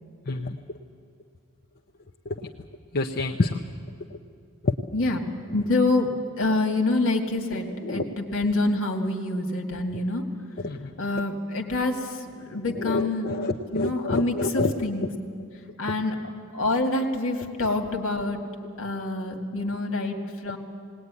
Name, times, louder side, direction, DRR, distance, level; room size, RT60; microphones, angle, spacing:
voice 1, 0.3-0.8 2.2-2.5 2.9-3.6 4.6-4.7 7.8-8.0 10.6-11.0 12.8-14.7, left 3 dB, 45° left, 3 dB, 0.8 m, -27 dB
voice 2, 4.9-10.2 11.0-13.3 13.7-15.1 15.8-16.2 16.5-18.4 18.8-20.6, left 2 dB, 65° left, 3 dB, 2.2 m, -26 dB
19.5 x 19.0 x 9.7 m, 2.3 s
head